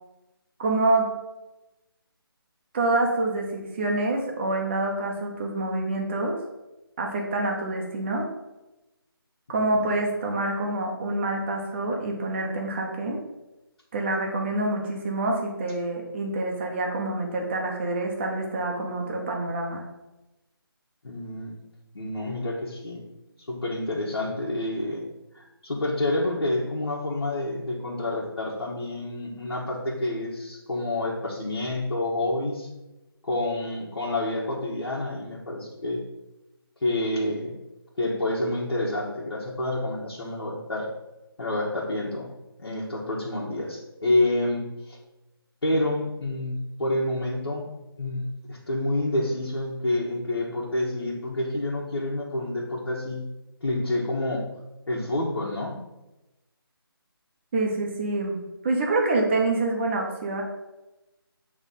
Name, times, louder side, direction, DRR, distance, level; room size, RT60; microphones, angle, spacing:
voice 1, 0.6-1.1 2.7-6.4 7.0-8.3 9.5-13.2 13.9-19.8 57.5-58.4 58.6-60.4, right 2 dB, 30° right, 0 dB, 1.1 m, -26 dB
voice 2, 21.0-21.6 21.9-23.0 23.5-25.0 25.3-32.7 33.2-36.0 36.8-37.5 38.0-40.9 41.4-42.3 42.6-45.0 45.6-47.7 48.0-53.3 53.6-54.5 54.9-55.7, left 1 dB, 75° left, -6 dB, 1.7 m, -28 dB
8.0 x 3.5 x 4.0 m, 0.99 s
figure-of-eight pair, 160°, 13 cm